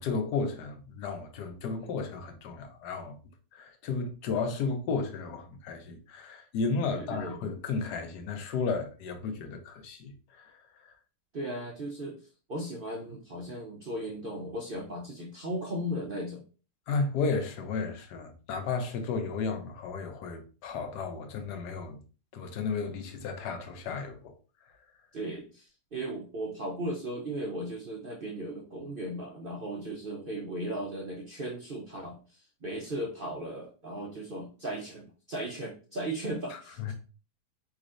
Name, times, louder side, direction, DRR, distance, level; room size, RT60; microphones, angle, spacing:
voice 1, 0.0-3.1 3.5-10.6 10.8-10.9 16.9-22.0 22.3-24.3 36.5-36.9, left 4 dB, 65° left, 1.3 m, -33 dB
voice 2, 6.9-7.4 11.3-12.2 12.5-16.4 25.1-36.9, right 1 dB, 55° right, 0.6 m, -37 dB
4.8 x 4.0 x 2.5 m
omnidirectional pair, 2.0 m